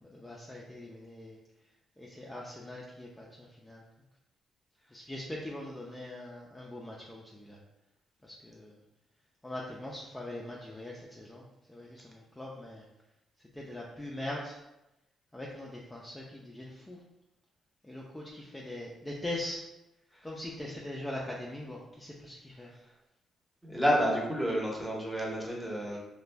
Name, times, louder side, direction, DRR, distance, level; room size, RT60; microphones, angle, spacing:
voice 1, 0.1-1.4 2.0-3.8 4.9-7.6 8.2-8.7 9.4-11.4 11.7-12.8 13.6-14.5 15.3-17.0 17.8-19.6 20.2-22.7, left 1 dB, 15° left, -4 dB, 0.4 m, -41 dB
voice 2, 23.6-26.0, equal, 5° right, -2 dB, 0.8 m, -29 dB
2.4 x 2.1 x 3.2 m, 0.93 s
cardioid pair, 70°, 0 cm